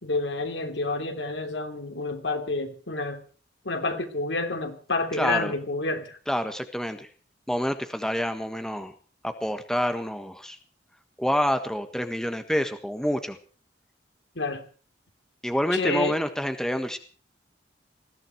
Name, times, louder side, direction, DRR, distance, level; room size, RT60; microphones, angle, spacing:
voice 1, 0.0-3.2 3.6-6.2 14.3-14.7 15.7-16.2, left 3 dB, 75° left, 7 dB, 3.0 m, -29 dB
voice 2, 5.2-5.5 6.3-7.1 7.5-8.9 9.2-10.6 11.2-13.4 15.4-17.0, equal, 5° left, 8 dB, 1.4 m, -27 dB
20.5 x 15.0 x 4.6 m, 0.40 s
head